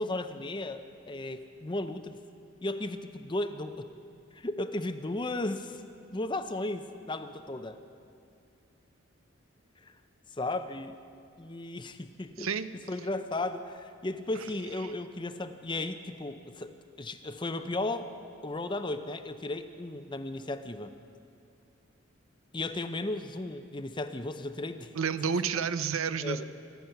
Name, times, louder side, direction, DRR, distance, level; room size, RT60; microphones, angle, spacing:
voice 1, 0.0-2.2 2.6-3.9 4.3-5.8 6.1-7.8 9.8-9.9 10.3-11.0 11.4-12.5 12.9-18.1 18.4-20.9 22.5-24.9 25.2-25.3 26.2-26.5, left 2 dB, 20° left, 9 dB, 0.6 m, -35 dB
voice 2, 12.4-12.7 14.8-14.9 24.9-26.5, right 6 dB, 75° right, 13 dB, 0.6 m, -30 dB
25.5 x 9.4 x 5.7 m, 2.4 s
head